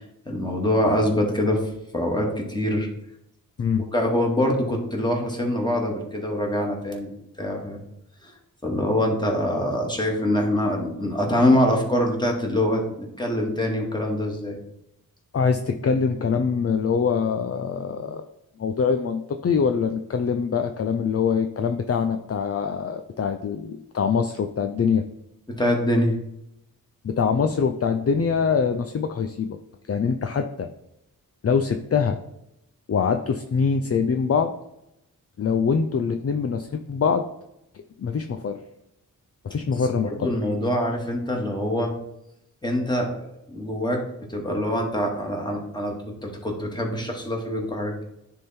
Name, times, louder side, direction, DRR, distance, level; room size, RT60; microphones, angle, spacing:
voice 1, 0.3-1.6 1.9-2.9 3.9-7.8 8.2-8.3 8.6-14.6 25.5-26.1 39.8-41.9 42.6-44.0 44.3-48.0, left 1 dB, 10° left, 0 dB, 2.2 m, -24 dB
voice 2, 15.3-18.2 18.6-25.0 27.0-29.6 29.9-30.7 31.4-32.2 32.9-34.5 35.4-37.3 38.0-38.6 39.4-40.3, left 6 dB, 45° left, 6 dB, 0.6 m, -24 dB
9.8 x 3.8 x 4.4 m, 0.81 s
cardioid pair, 65°, 34 cm